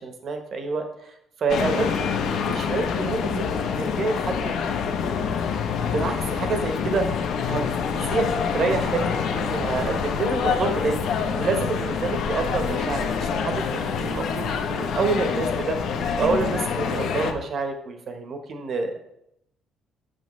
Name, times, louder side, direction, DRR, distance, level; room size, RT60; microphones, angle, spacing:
voice 1, 0.0-4.8 5.9-7.6 7.9-19.0, right 4 dB, 40° right, 5 dB, 1.0 m, -28 dB
sound 1, 1.5-17.3, left 6 dB, 60° left, 0.7 m, -26 dB
7.7 x 6.4 x 3.1 m, 0.79 s
cardioid pair, 155°, 0 cm